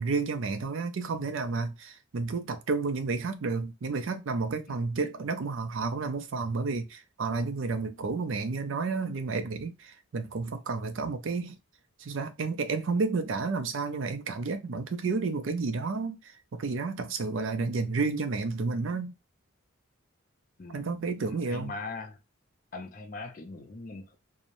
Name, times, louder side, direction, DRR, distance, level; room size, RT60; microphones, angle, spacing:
voice 1, 0.0-11.6 12.0-19.1 20.7-21.7, right 4 dB, 60° right, 0.4 m, -31 dB
voice 2, 20.6-22.2 22.7-24.1, left 3 dB, 40° left, 0.5 m, -41 dB
3.0 x 2.0 x 2.5 m
head